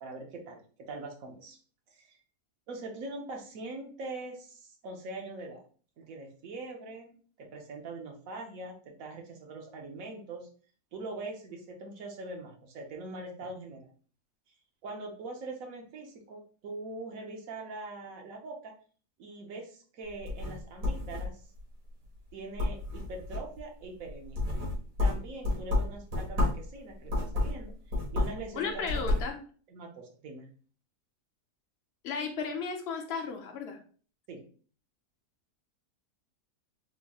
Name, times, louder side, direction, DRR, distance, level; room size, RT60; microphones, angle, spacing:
voice 1, 0.0-1.6 1.9-2.2 2.7-5.6 6.0-10.5 10.9-13.9 14.8-18.7 19.2-21.4 22.3-24.4 25.0-27.7 28.1-29.0 29.7-30.5 34.3-34.4, right 2 dB, 60° right, 2 dB, 1.1 m, -42 dB
sound 1, 20.1-21.6 22.0-22.3 22.6-23.6 24.1-26.7 27.0-28.5 28.7-29.3, left 2 dB, 80° right, 2.0 m, -30 dB
voice 2, 28.5-29.4 32.0-33.8, left 5 dB, 55° left, 3 dB, 0.7 m, -34 dB
4.3 x 3.0 x 2.3 m, 0.42 s
omnidirectional pair, 1.7 m